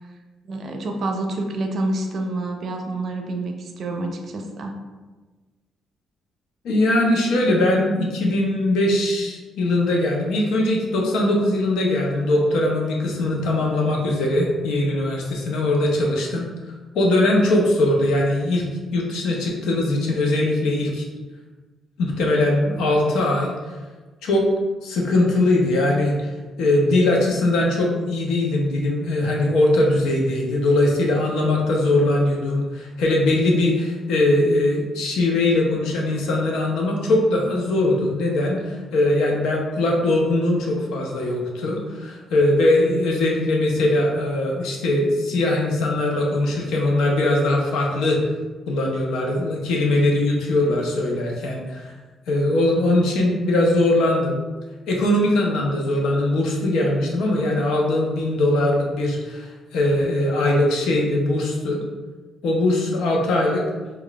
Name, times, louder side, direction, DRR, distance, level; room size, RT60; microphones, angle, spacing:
voice 1, 0.5-4.7, right 2 dB, 55° right, 3 dB, 0.5 m, -28 dB
voice 2, 6.6-16.4 16.9-18.6 18.9-21.0 22.0-23.5 24.2-24.5 24.8-26.3 26.6-48.2 48.7-51.9 52.3-54.4 54.9-61.8 62.4-63.6, left 1 dB, 85° left, -1 dB, 0.7 m, -21 dB
4.8 x 2.3 x 2.3 m, 1.3 s
cardioid pair, 90°, 0 cm